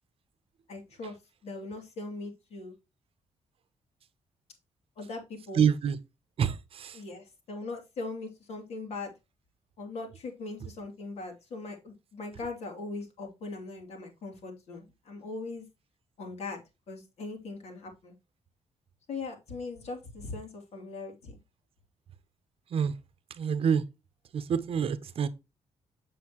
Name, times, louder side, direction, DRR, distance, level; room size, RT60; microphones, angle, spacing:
voice 1, 0.7-1.2 1.4-2.7 5.0-5.6 6.9-9.1 9.8-15.6 16.2-18.1 19.1-21.4, left 3 dB, 70° left, 3.0 m, -40 dB
voice 2, 5.5-6.0 6.4-7.0 22.7-22.9 23.4-23.8 24.3-25.3, right 7 dB, 55° right, 0.8 m, -27 dB
7.8 x 6.9 x 3.0 m
wide cardioid pair, 165°, 11 cm